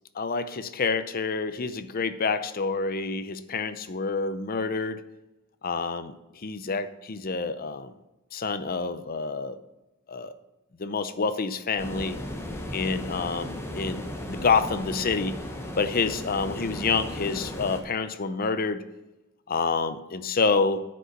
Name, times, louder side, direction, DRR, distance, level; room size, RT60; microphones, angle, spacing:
voice 1, 0.1-5.0 5.6-7.9 8.3-9.6 10.1-10.3 10.8-12.2 12.7-15.4 15.8-18.8 19.5-20.8, left 4 dB, 45° left, 12 dB, 0.6 m, -28 dB
sound 1, 11.8-17.8, left 1 dB, 10° left, 1.1 m, -36 dB
9.8 x 5.4 x 6.5 m, 1.0 s
head